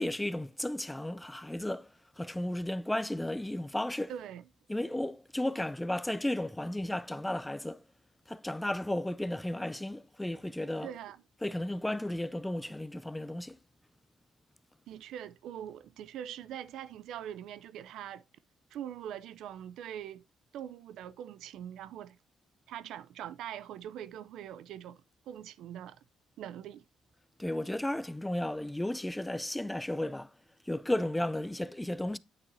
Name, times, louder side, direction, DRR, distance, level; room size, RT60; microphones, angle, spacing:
voice 1, 0.0-1.9 2.2-4.1 4.7-7.8 8.3-10.9 11.4-13.6 27.4-30.3 30.7-32.2, left 1 dB, 10° left, 0.4 m, -34 dB
voice 2, 4.1-4.5 10.8-11.2 14.9-18.2 18.7-20.3 20.5-22.2 22.7-26.0 26.4-26.8, right 10 dB, 85° right, 0.4 m, -43 dB
8.8 x 8.6 x 2.6 m
cardioid pair, 90°, 0 cm